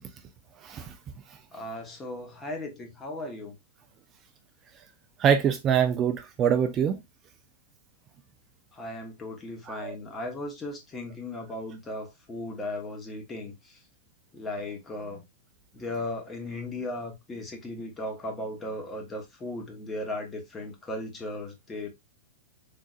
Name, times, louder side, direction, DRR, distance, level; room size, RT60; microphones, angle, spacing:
voice 1, 0.6-0.9 5.2-7.0 9.7-10.0, right 8 dB, 30° right, 0.4 m, -24 dB
voice 2, 1.5-3.5 8.7-13.8 14.3-15.2 15.7-21.9, left 1 dB, 20° left, 1.1 m, -36 dB
3.7 x 2.6 x 2.4 m
hypercardioid pair, 115°, 0 cm